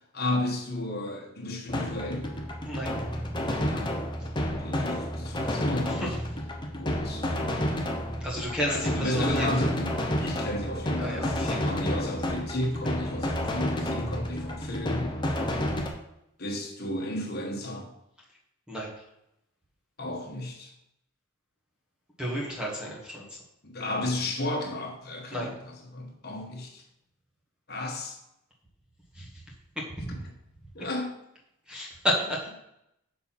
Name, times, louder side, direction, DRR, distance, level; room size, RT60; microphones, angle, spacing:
voice 1, 0.1-2.2 3.7-4.0 4.6-6.1 6.7-7.3 8.6-9.9 10.2-15.1 16.4-17.9 20.0-20.7 23.6-26.8 27.7-28.2 30.7-31.1, left 1 dB, 45° left, 0 dB, 1.4 m, -33 dB
sound 1, 1.7-15.9, left 1 dB, 20° left, 0.8 m, -30 dB
voice 2, 8.2-9.7 11.0-11.6 15.4-15.5 18.7-18.9 22.2-23.2 25.3-25.5 29.2-29.3 29.8-30.2 31.7-32.5, equal, 5° right, -4 dB, 1.4 m, -32 dB
6.7 x 4.3 x 5.7 m, 0.81 s
head